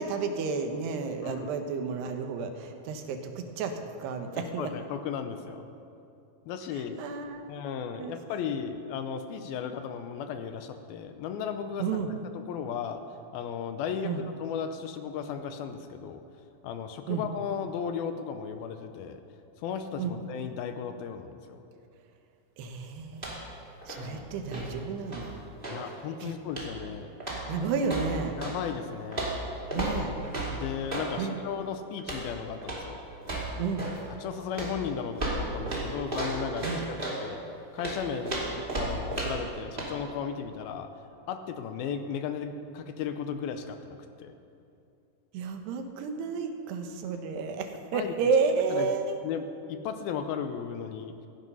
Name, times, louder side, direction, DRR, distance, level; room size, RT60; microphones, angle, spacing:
voice 1, 0.0-4.7 7.0-7.5 8.0-8.2 11.8-12.1 14.0-14.2 17.1-17.3 20.0-20.2 22.6-23.3 23.9-25.4 26.2-26.3 27.5-28.4 29.7-30.1 31.2-31.4 33.6-33.9 36.6-36.8 45.3-49.2, right 5 dB, 85° right, 5 dB, 3.3 m, -31 dB
voice 2, 1.2-1.5 4.6-5.7 6.5-7.0 7.5-11.8 12.4-13.0 13.3-16.2 16.6-19.2 19.6-21.6 23.9-24.3 25.7-27.1 28.4-29.3 29.7-29.8 30.5-33.0 34.2-36.7 37.2-37.4 37.7-40.9 41.3-44.3 47.9-48.1 48.7-48.9 49.2-51.2, left 7 dB, 75° left, 8 dB, 2.5 m, -35 dB
sound 1, 23.1-23.6 23.8-25.9 26.5-26.9 27.2-28.6 29.1-31.1 32.0-32.3 32.6-32.9 33.2-34.0 34.5-37.2 37.8-39.5 39.8-39.9, right 1 dB, 15° right, 2.2 m, -34 dB
17.0 x 15.0 x 5.5 m, 2.6 s
omnidirectional pair, 4.6 m